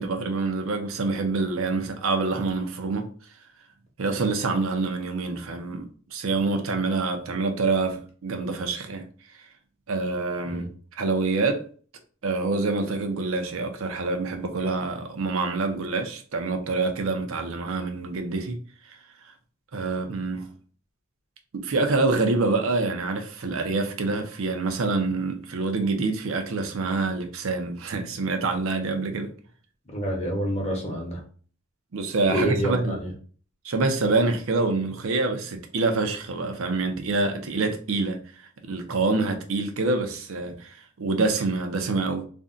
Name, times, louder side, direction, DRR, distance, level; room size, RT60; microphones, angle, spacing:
voice 1, 0.0-3.1 4.0-9.1 9.9-10.7 11.0-11.6 12.2-19.0 19.7-20.5 21.5-29.3 31.9-33.0 33.6-42.3, right 3 dB, 70° right, 0.5 m, -26 dB
voice 2, 29.9-31.2 32.3-33.1, right 1 dB, 30° left, 0.8 m, -27 dB
2.5 x 2.1 x 3.7 m
head